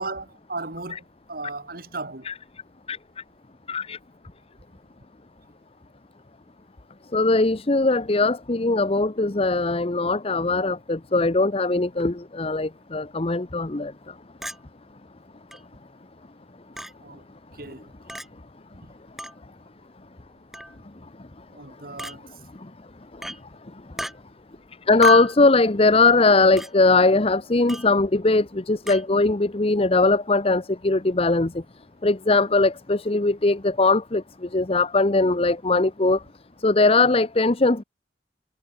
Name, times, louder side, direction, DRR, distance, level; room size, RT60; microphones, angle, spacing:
voice 1, 0.0-2.3 17.0-17.2 17.5-17.9 21.5-22.3, right 3 dB, 55° right, 3.8 m, -36 dB
voice 2, 3.7-4.0 7.1-14.1 22.6-22.7 24.9-31.6 32.0-36.2 36.6-37.8, left 3 dB, 35° left, 0.9 m, -20 dB
Chink clink, 14.4-14.6 15.5-15.6 16.8-16.9 18.1-18.3 19.2-19.4 20.5-20.8 22.0-22.2 23.2-23.4 24.0-24.1 25.0-25.4 26.6-26.7 27.7-27.9 28.9-29.0, equal, ahead, 0.9 m, -31 dB
head